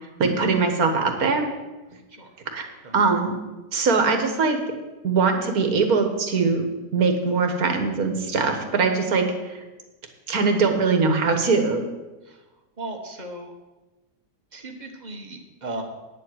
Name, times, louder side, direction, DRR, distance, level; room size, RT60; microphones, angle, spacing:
voice 1, 0.2-1.5 2.5-2.7 2.9-3.3 3.7-4.6 5.0-6.6 6.9-9.6 10.3-11.9, right 4 dB, 60° right, 5 dB, 1.8 m, -21 dB
voice 2, 12.8-13.5 14.5-15.8, right 2 dB, 25° right, 3 dB, 1.4 m, -36 dB
9.7 x 7.6 x 7.9 m, 1.1 s
omnidirectional pair, 1.8 m